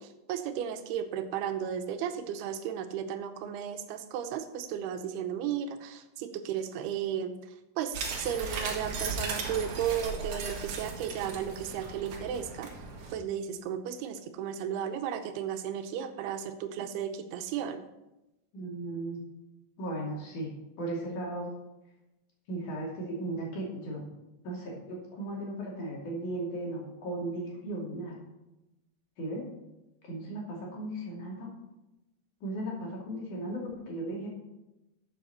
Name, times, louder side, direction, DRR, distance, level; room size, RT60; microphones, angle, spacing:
voice 1, 0.0-12.8 13.1-17.8, right 9 dB, 90° right, 8 dB, 2.8 m, -34 dB
sound 1, 7.9-13.1, right 4 dB, 55° right, 2.6 m, -37 dB
voice 2, 18.5-19.2 19.8-20.5 20.8-21.5 22.5-24.0 24.4-28.2 29.2-29.5 30.0-31.5 32.4-34.3, right 1 dB, 55° left, -3 dB, 3.7 m, -36 dB
13.0 x 7.6 x 4.3 m, 0.96 s
omnidirectional pair, 4.4 m